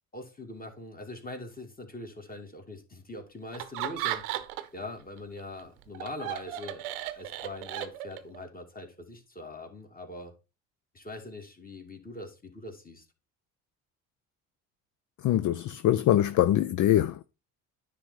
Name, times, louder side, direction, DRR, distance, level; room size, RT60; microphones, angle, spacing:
voice 1, 0.1-4.3 4.7-10.3 10.9-13.0, left 2 dB, 20° left, 2.3 m, -42 dB
Laughter, 3.5-4.8 5.2-8.4, right 13 dB, 80° right, 0.9 m, -35 dB
voice 2, 15.2-17.2, left 12 dB, 45° left, 0.5 m, -23 dB
9.8 x 3.4 x 5.5 m
hypercardioid pair, 60°, 43 cm